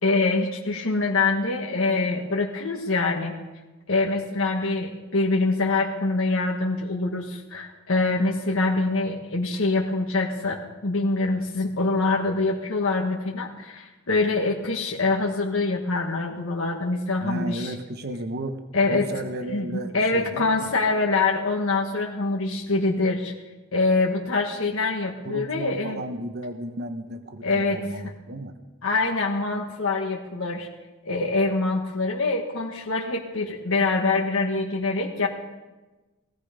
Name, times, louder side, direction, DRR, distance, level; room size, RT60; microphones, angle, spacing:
voice 1, 0.0-3.3 3.9-17.7 18.7-19.0 19.5-23.3 23.7-26.0 27.4-27.8 28.8-30.7 31.0-35.3, left 3 dB, 65° left, -1 dB, 1.5 m, -24 dB
voice 2, 17.2-20.8 25.2-28.6, right 1 dB, 50° right, 8 dB, 1.0 m, -34 dB
17.5 x 16.0 x 5.1 m, 1.2 s
head